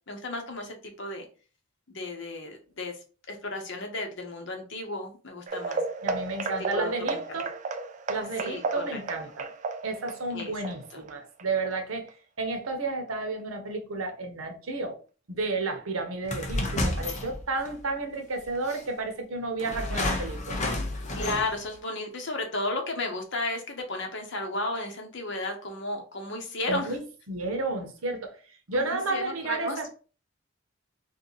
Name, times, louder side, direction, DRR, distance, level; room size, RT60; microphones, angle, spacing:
voice 1, 0.1-1.3 1.9-3.0 3.3-5.8 6.7-7.4 8.4-9.0 10.3-11.0 21.1-26.9 28.7-29.9, left 2 dB, 60° left, 1.1 m, -34 dB
sound 1, 5.5-12.1 12.4-12.7 13.1-13.2 13.6-13.7, right 4 dB, 35° right, 0.4 m, -34 dB
voice 2, 6.0-7.6 8.1-9.5 9.8-15.0 15.3-20.6 26.7-27.0 27.3-28.4 28.7-29.9, right 3 dB, 90° right, 0.9 m, -32 dB
sound 2, 16.2-17.8 18.7-18.8 19.6-21.7, left 1 dB, 35° left, 0.8 m, -30 dB
3.3 x 2.7 x 4.0 m
head